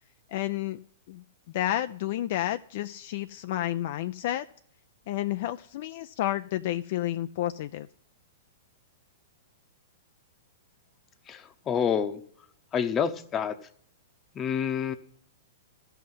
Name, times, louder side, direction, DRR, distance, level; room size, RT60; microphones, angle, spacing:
voice 1, 0.3-0.8 1.1-1.2 1.5-4.5 5.1-7.9, left 13 dB, 55° left, 10 dB, 0.4 m, -30 dB
voice 2, 11.3-12.2 12.7-13.6 14.3-14.9, left 7 dB, 25° left, 11 dB, 0.9 m, -28 dB
14.0 x 5.7 x 7.8 m, 0.65 s
hypercardioid pair, 125°, 0 cm